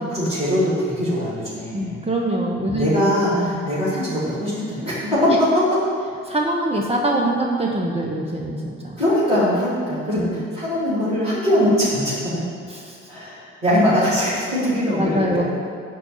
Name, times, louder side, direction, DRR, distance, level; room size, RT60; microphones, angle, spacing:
voice 1, 0.1-2.1 2.7-5.8 9.0-12.4 13.1-15.4, equal, 90° right, -13 dB, 3.0 m, -21 dB
voice 2, 1.7-3.6 5.3-5.4 6.3-9.0 10.1-10.4 12.7-13.0 15.0-15.4, right 1 dB, 15° right, -2 dB, 1.5 m, -24 dB
12.0 x 4.6 x 8.1 m, 2.1 s
figure-of-eight pair, 40°, 37 cm